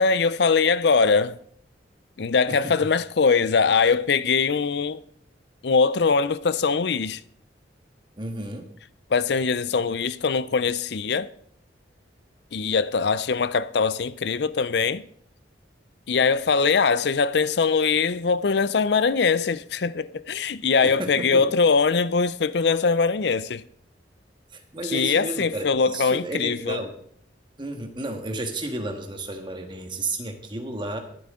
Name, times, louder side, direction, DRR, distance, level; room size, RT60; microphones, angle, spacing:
voice 1, 0.0-1.4 2.2-5.0 5.6-7.2 9.1-11.3 12.5-15.0 16.1-23.6 24.8-26.8, left 5 dB, 65° left, 0.5 m, -22 dB
voice 2, 8.2-8.7 20.8-21.4 24.7-26.9 27.6-31.0, right 2 dB, 25° right, 1.5 m, -32 dB
22.0 x 7.9 x 3.7 m
head